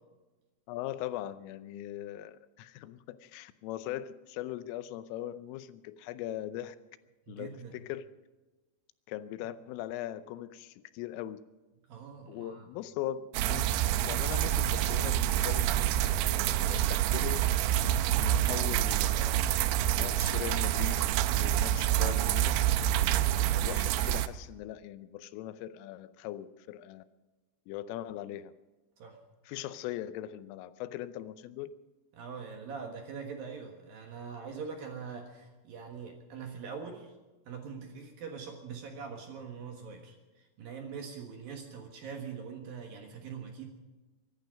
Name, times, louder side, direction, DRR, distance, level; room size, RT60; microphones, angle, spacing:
voice 1, 0.7-6.8 7.3-8.1 9.1-11.4 12.3-13.8 14.0-15.9 16.3-17.4 18.1-19.4 19.9-21.1 21.4-22.7 23.5-27.0 27.7-28.5 29.5-31.7, left 12 dB, 85° left, 13 dB, 3.3 m, -40 dB
voice 2, 7.3-7.8 11.9-12.6 29.0-29.2 32.1-37.1 37.5-43.7, right 6 dB, 60° right, 3 dB, 2.6 m, -43 dB
sound 1, 13.3-24.3, right 12 dB, 85° right, 2.6 m, -27 dB
24.0 x 11.0 x 5.2 m, 1.2 s
omnidirectional pair, 5.7 m